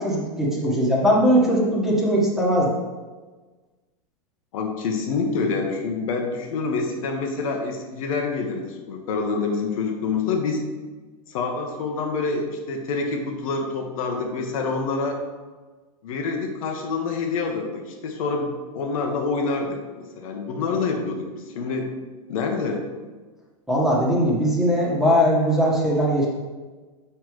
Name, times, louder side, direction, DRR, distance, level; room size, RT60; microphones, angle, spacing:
voice 1, 0.0-2.7 23.7-26.3, equal, ahead, -5 dB, 1.4 m, -20 dB
voice 2, 4.5-10.6 11.3-15.2 16.0-18.5 18.7-21.9 22.3-22.8, left 4 dB, 65° left, 2 dB, 1.1 m, -27 dB
6.7 x 5.6 x 3.2 m, 1.3 s
supercardioid pair, 140°, 19 cm